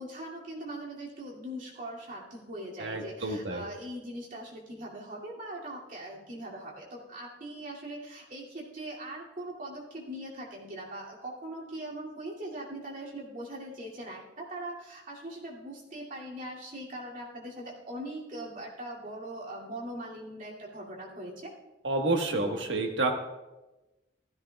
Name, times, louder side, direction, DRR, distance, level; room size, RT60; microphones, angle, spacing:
voice 1, 0.0-21.5, right 1 dB, 50° right, -4 dB, 2.6 m, -41 dB
voice 2, 2.8-3.6 21.8-23.1, right 2 dB, 75° right, 3 dB, 1.4 m, -29 dB
15.5 x 14.0 x 2.4 m, 1.1 s
head